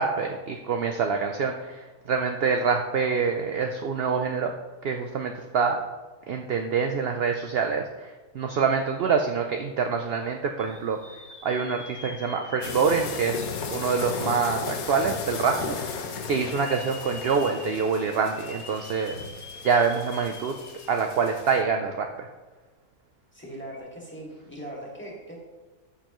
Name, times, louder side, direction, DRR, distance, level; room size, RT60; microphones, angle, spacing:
voice 1, 0.0-4.5 4.8-5.8 6.3-19.2 19.6-20.5 20.9-22.3, right 5 dB, 65° right, 4 dB, 0.6 m, -26 dB
sound 1, 10.6-14.5 15.1-15.2 16.2-21.2 21.6-21.7 23.6-23.8, left 3 dB, 25° left, 0.7 m, -45 dB
sound 2, 12.6-21.6, left 5 dB, 70° left, 1.3 m, -36 dB
voice 2, 23.3-25.4, right 1 dB, 5° left, -3 dB, 2.0 m, -40 dB
12.5 x 6.7 x 3.0 m, 1.3 s
omnidirectional pair, 1.6 m